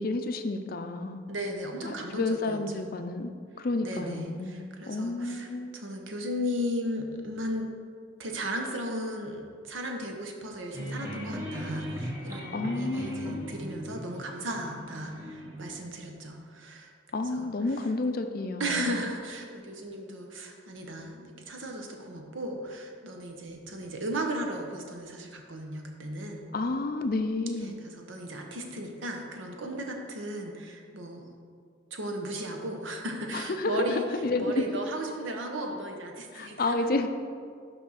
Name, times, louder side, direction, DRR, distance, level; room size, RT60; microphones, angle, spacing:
voice 1, 0.0-1.2 1.8-3.3 3.6-4.5 4.9-5.7 12.5-13.5 17.1-19.0 26.5-27.7 33.3-34.6 36.3-37.1, left 2 dB, 50° left, 7 dB, 0.5 m, -30 dB
voice 2, 1.3-2.9 3.8-7.7 8.2-16.9 17.3-17.5 18.6-26.4 27.6-31.2 31.9-34.1 34.4-36.8, equal, 80° right, 3 dB, 0.9 m, -36 dB
sound 1, 10.7-15.7, equal, 15° right, 0.9 m, -38 dB
6.1 x 5.4 x 5.7 m, 2.1 s
head